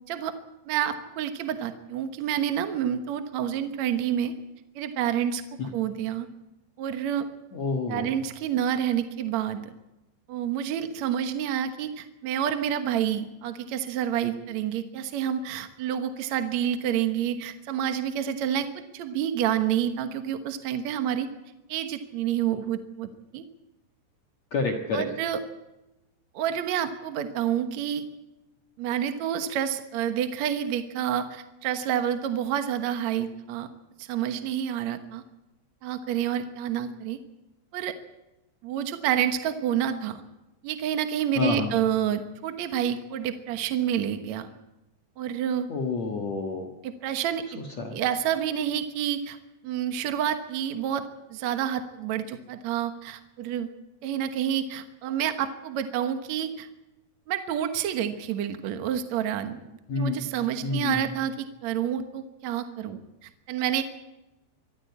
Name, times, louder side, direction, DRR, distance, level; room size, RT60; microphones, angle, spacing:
voice 1, 0.7-4.3 4.8-5.4 5.7-6.3 6.8-7.3 7.9-9.7 10.3-21.3 21.7-23.4 24.9-25.4 26.3-28.1 28.8-33.7 34.0-35.2 35.8-37.2 37.7-38.0 38.6-40.2 40.6-44.5 45.2-45.7 46.8-47.6 47.9-49.4 49.6-51.0 51.3-53.7 54.0-56.7 57.3-59.6 60.0-63.8, right 9 dB, 70° right, 8 dB, 1.7 m, -28 dB
voice 2, 7.5-8.1 24.5-25.1 41.4-41.7 45.7-46.7 47.6-48.0 59.9-60.2 60.6-61.0, left 4 dB, 55° left, 3 dB, 2.1 m, -28 dB
25.0 x 14.5 x 8.5 m, 0.99 s
omnidirectional pair, 4.9 m